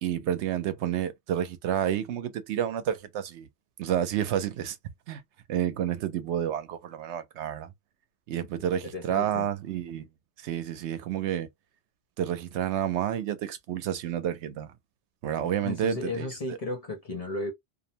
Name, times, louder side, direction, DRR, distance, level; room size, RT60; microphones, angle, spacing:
voice 1, 0.0-3.5 3.8-4.8 5.1-5.2 5.5-7.7 8.3-10.1 10.4-11.5 12.2-14.7 15.2-16.3, right 10 dB, 80° right, 0.9 m, -30 dB
voice 2, 8.6-9.5 15.4-17.5, left 2 dB, 40° left, 0.6 m, -35 dB
2.5 x 2.0 x 2.7 m
omnidirectional pair, 1.1 m